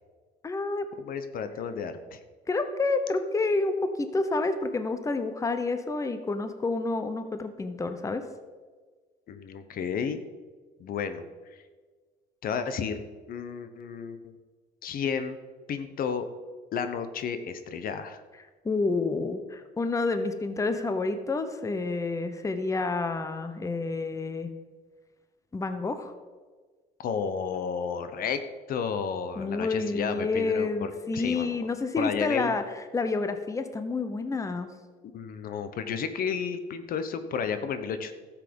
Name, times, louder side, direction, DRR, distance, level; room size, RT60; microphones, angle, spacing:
voice 1, 0.4-0.9 2.5-8.2 18.6-24.5 25.5-26.1 29.4-34.7, left 3 dB, 20° left, 9 dB, 0.9 m, -29 dB
voice 2, 1.0-2.2 9.3-10.2 10.8-11.3 12.4-13.0 13.3-14.3 14.8-15.4 15.7-16.3 16.7-18.2 27.0-28.4 28.7-31.7 32.0-32.5 35.1-38.1, left 6 dB, 60° left, 10 dB, 1.0 m, -32 dB
12.5 x 7.4 x 5.4 m, 1.4 s
cardioid pair, 110°, 17 cm